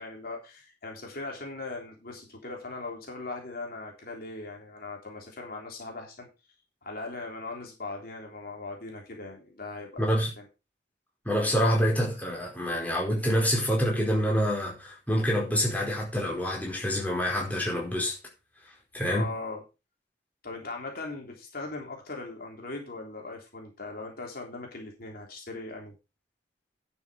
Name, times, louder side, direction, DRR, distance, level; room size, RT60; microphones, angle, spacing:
voice 1, 0.0-6.3 6.8-10.0 10.4-10.5 19.1-19.6 20.4-25.9, left 3 dB, 55° left, 3.5 m, -39 dB
voice 2, 10.0-10.3 11.2-18.1 18.9-19.3, equal, 10° left, 4.6 m, -26 dB
11.0 x 7.2 x 5.0 m
head